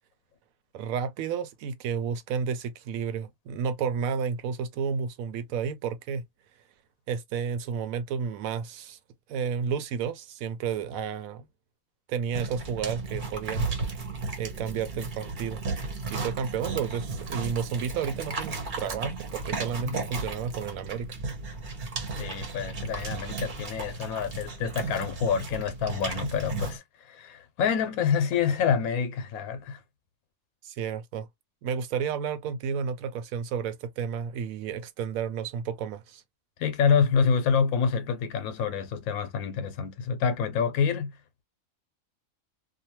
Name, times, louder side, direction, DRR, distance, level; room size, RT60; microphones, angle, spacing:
voice 1, 0.7-6.2 7.1-9.0 9.3-11.5 12.1-13.7 14.4-15.6 16.1-21.1 30.6-31.3 31.6-36.2, right 7 dB, 75° right, 1.0 m, -31 dB
sound 1, 12.3-26.8, right 3 dB, 45° right, 0.8 m, -34 dB
voice 2, 22.2-29.8 36.6-41.1, left 6 dB, 90° left, 1.1 m, -27 dB
2.6 x 2.2 x 2.7 m
omnidirectional pair, 1.5 m